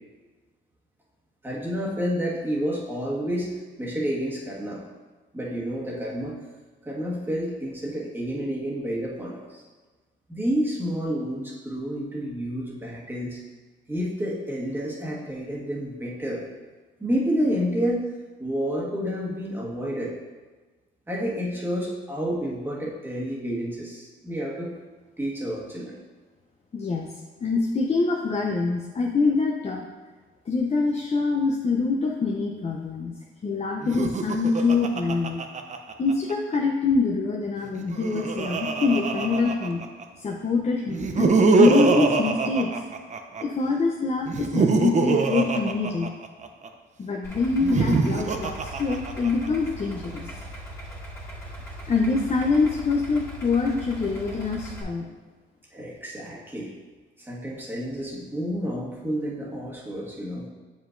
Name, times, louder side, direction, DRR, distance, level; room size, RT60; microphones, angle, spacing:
voice 1, 1.4-3.5 3.8-4.8 5.3-6.4 6.8-9.6 10.3-13.4 13.9-16.5 17.0-18.1 18.4-20.2 21.1-24.7 25.2-26.0 55.7-56.7 57.2-60.5, equal, 10° right, -4 dB, 1.5 m, -29 dB
voice 2, 26.7-27.1 27.4-29.9 30.5-33.1 33.4-35.4 36.0-39.8 40.2-42.8 43.4-46.1 47.0-50.3 51.9-55.1, left 4 dB, 35° left, 0 dB, 0.6 m, -25 dB
Laughter, 33.8-36.3 37.7-40.0 40.9-43.4 44.3-46.7 47.5-49.5, right 4 dB, 35° right, 0.6 m, -24 dB
Idling, 47.2-54.8, equal, 15° left, 1.8 m, -39 dB
7.3 x 5.1 x 2.5 m, 1.3 s
cardioid pair, 90°, 20 cm